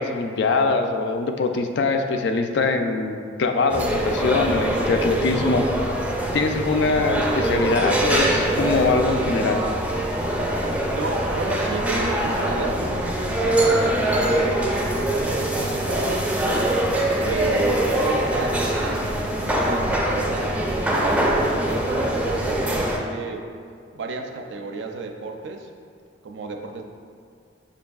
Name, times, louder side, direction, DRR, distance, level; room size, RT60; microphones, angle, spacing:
voice 1, 0.0-5.7 6.3-9.6, left 3 dB, 65° left, 5 dB, 0.3 m, -23 dB
sound 1, 3.7-23.0, right 1 dB, 5° right, 0.4 m, -23 dB
voice 2, 10.9-16.7 17.2-23.5 23.9-25.7 26.2-26.8, right 3 dB, 65° right, 4 dB, 0.4 m, -32 dB
6.8 x 2.5 x 2.3 m, 2.2 s
head